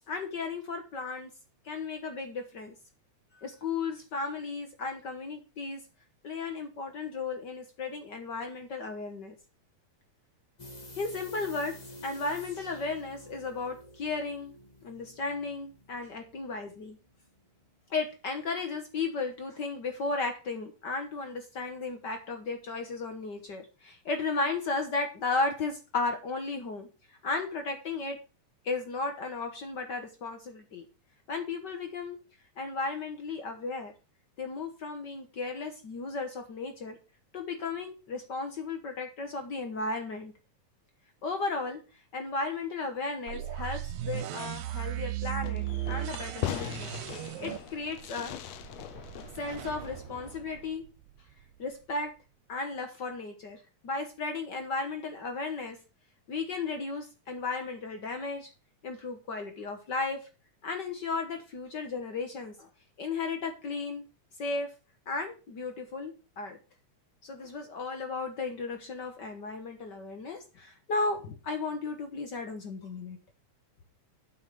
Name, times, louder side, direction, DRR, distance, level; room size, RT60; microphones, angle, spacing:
voice 1, 0.1-1.3 1.6-2.7 3.3-5.8 6.2-9.3 11.0-14.5 14.8-17.0 17.9-26.9 27.2-28.2 28.6-30.9 31.3-32.2 32.6-33.9 34.4-37.0 37.3-40.3 41.2-41.8 42.1-46.9 47.4-48.3 49.3-50.9 51.6-52.1 52.5-55.8 56.3-58.5 58.8-60.2 60.6-62.7 63.0-64.1 64.4-64.7 65.1-66.6 67.2-73.2, left 3 dB, 55° left, 6 dB, 1.2 m, -35 dB
sound 1, 10.6-17.4 17.7-17.8, equal, 35° left, 0.7 m, -50 dB
sound 2, 43.3-51.2, right 14 dB, 85° right, 2.0 m, -37 dB
Fireworks, 45.4-50.7, left 12 dB, 75° left, 1.9 m, -40 dB
8.5 x 5.7 x 6.3 m, 0.31 s
omnidirectional pair, 3.4 m